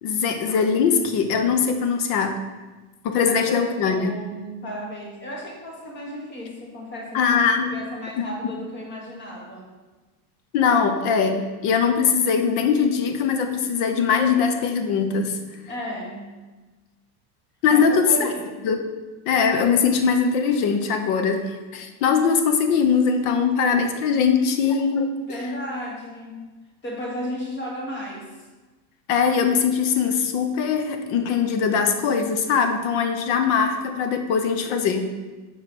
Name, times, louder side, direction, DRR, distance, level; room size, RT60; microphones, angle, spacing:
voice 1, 0.0-2.4 3.0-4.2 7.1-7.7 8.2-8.3 10.5-15.4 17.6-18.3 18.6-18.8 19.3-25.1 29.1-35.1, left 6 dB, 55° left, 6 dB, 0.9 m, -21 dB
voice 2, 3.2-7.4 7.7-9.7 15.7-16.4 17.7-18.7 21.7-21.9 25.2-26.5 26.8-28.3, equal, 25° left, -1 dB, 1.6 m, -34 dB
4.9 x 4.8 x 6.1 m, 1.2 s
supercardioid pair, 150°, 47 cm